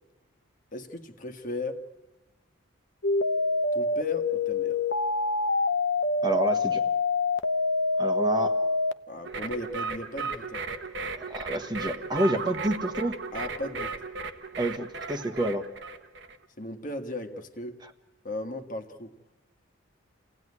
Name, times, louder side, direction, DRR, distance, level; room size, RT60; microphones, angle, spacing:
voice 1, 0.7-1.8 3.7-4.8 9.1-10.6 13.3-13.9 16.6-17.8 18.2-19.2, left 2 dB, 40° left, 6 dB, 1.5 m, -36 dB
sound 1, 3.0-8.9, left 3 dB, 60° left, 0.8 m, -26 dB
voice 2, 6.2-6.8 8.0-8.5 11.2-13.2 14.6-15.7, right 1 dB, 20° right, 6 dB, 1.2 m, -28 dB
sound 2, 9.2-16.4, right 4 dB, 55° right, 1.2 m, -36 dB
28.5 x 17.5 x 9.7 m, 1.1 s
head